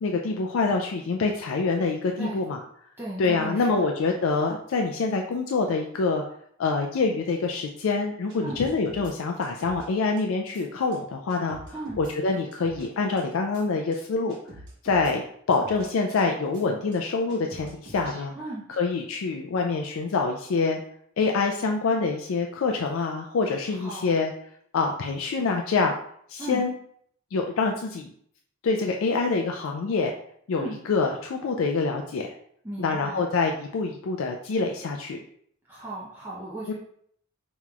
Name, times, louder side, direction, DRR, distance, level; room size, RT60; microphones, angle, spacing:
voice 1, 0.0-2.6 3.2-6.2 6.6-11.6 12.0-14.4 14.8-18.3 18.8-20.8 21.2-24.3 24.7-25.9 26.3-26.7 27.3-28.1 28.6-30.1 30.5-32.3 32.8-35.2 36.7-36.8, left 4 dB, 75° left, 2 dB, 0.4 m, -26 dB
voice 2, 2.2-2.5 3.0-3.9 8.4-8.6 11.7-12.0 18.3-18.6 23.7-24.2 26.4-26.6 30.6-30.8 32.6-33.3 35.7-36.7, right 2 dB, 10° right, -7 dB, 0.6 m, -36 dB
sound 1, 8.3-9.1 9.4-9.9 10.2-10.3 10.5-10.6 10.9-11.0 11.3-12.1 12.5-12.9 13.2-13.3 13.5-13.6 13.9-14.0 14.3-15.1 15.5-15.9 16.2-16.3 16.5-16.6 16.9-17.0 17.3-18.3, right 1 dB, 60° right, 1.3 m, -46 dB
5.6 x 3.0 x 2.3 m, 0.66 s
head